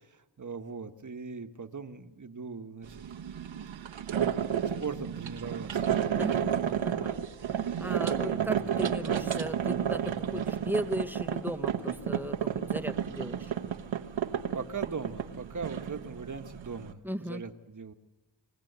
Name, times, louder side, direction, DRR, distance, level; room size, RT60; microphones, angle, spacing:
voice 1, 0.4-2.9 4.8-6.0 8.3-8.8 14.5-17.9, right 5 dB, 40° right, 7 dB, 1.4 m, -39 dB
sound 1, 2.9-16.9, right 9 dB, 80° right, 1.2 m, -32 dB
voice 2, 6.2-7.2 7.8-13.5 17.0-17.4, equal, 5° right, 8 dB, 1.3 m, -36 dB
26.0 x 15.5 x 8.1 m, 1.2 s
cardioid pair, 55°, 45 cm